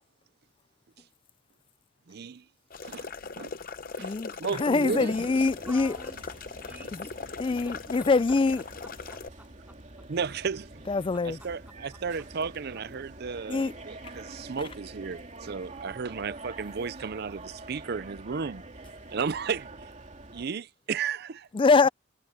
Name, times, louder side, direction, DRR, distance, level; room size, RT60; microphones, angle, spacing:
voice 1, 2.1-2.4 2.8-3.6 4.0-4.1 4.4-5.3 10.1-10.8 11.4-11.6 12.0-18.6 19.1-19.7 20.3-21.5, right 5 dB, 55° right, 0.5 m, -34 dB
sound 1, 2.7-9.3, left 4 dB, 45° left, 0.8 m, -40 dB
voice 2, 4.0-5.9 6.9-7.1 7.4-8.6 10.9-11.4 13.5-13.7 21.5-21.9, left 4 dB, 25° left, 0.3 m, -24 dB
voice 3, 4.8-7.0 7.4-8.1 8.8-10.1 11.1-12.9, right 1 dB, 10° right, 4.5 m, -51 dB
sound 2, 5.1-20.5, right 2 dB, 35° right, 2.9 m, -46 dB
head